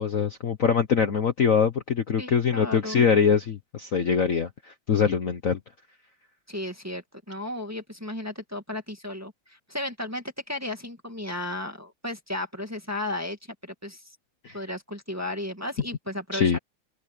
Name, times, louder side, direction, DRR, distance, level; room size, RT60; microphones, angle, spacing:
voice 1, 0.0-5.6 14.4-14.6 16.3-16.6, left 6 dB, 50° left, 1.3 m, -23 dB
voice 2, 2.2-3.0 6.5-13.4 13.6-14.0 14.5-16.6, left 1 dB, 10° right, 1.8 m, -34 dB
omnidirectional pair, 2.2 m